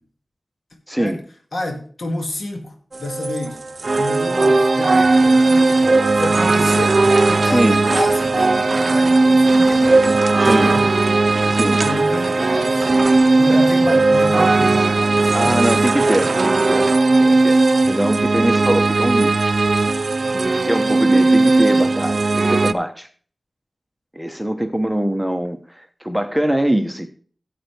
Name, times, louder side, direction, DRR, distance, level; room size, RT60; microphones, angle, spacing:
voice 1, 0.9-1.2 7.4-7.8 10.4-10.7 11.5-11.8 13.5-13.7 15.3-16.9 17.2-19.4 20.4-23.1 24.1-27.1, right 1 dB, 5° right, 7 dB, 1.0 m, -22 dB
voice 2, 1.5-3.6 4.0-10.0 10.3-10.9 11.8-12.9 13.4-15.9 17.1-17.5, left 2 dB, 70° left, 3 dB, 2.4 m, -29 dB
sound 1, 2.9-22.7, right 3 dB, 60° right, 0.5 m, -16 dB
13.5 x 8.2 x 3.4 m, 0.43 s
wide cardioid pair, 80°, 0 cm